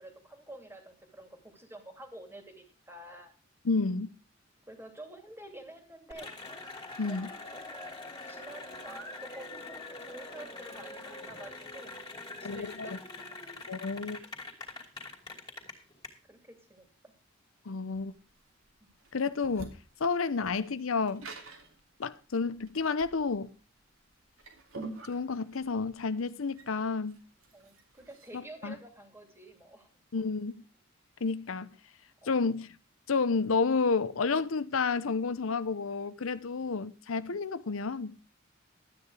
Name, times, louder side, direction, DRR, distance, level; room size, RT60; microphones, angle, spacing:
voice 1, 0.0-3.3 4.7-6.3 7.0-11.9 12.4-13.4 16.3-16.9 18.8-18.9 27.5-29.9 32.2-32.5, right 1 dB, 10° right, 2.6 m, -49 dB
voice 2, 3.6-4.1 7.0-7.3 12.4-13.0 13.7-14.2 17.7-18.1 19.1-19.7 20.0-21.3 22.0-23.5 25.0-27.2 28.3-28.7 30.1-30.6 31.2-31.7 32.3-32.7 33.1-38.2, left 4 dB, 80° left, 0.7 m, -30 dB
Cheering / Applause, 6.1-16.1, left 2 dB, 20° left, 2.7 m, -44 dB
sound 1, 18.0-28.4, right 3 dB, 85° right, 2.8 m, -48 dB
12.5 x 9.6 x 4.8 m
head